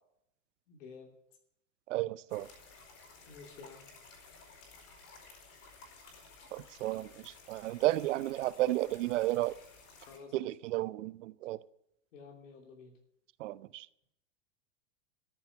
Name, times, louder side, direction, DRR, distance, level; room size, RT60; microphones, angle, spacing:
voice 1, 0.7-1.1 3.3-3.9 10.1-10.5 12.1-12.9, left 5 dB, 80° left, 3.0 m, -51 dB
voice 2, 1.9-2.5 6.5-9.6 10.3-11.6 13.4-13.9, right 16 dB, 70° right, 0.7 m, -33 dB
sound 1, 2.3-10.2, left 4 dB, 40° left, 4.5 m, -55 dB
13.5 x 7.2 x 9.6 m
supercardioid pair, 145°, 38 cm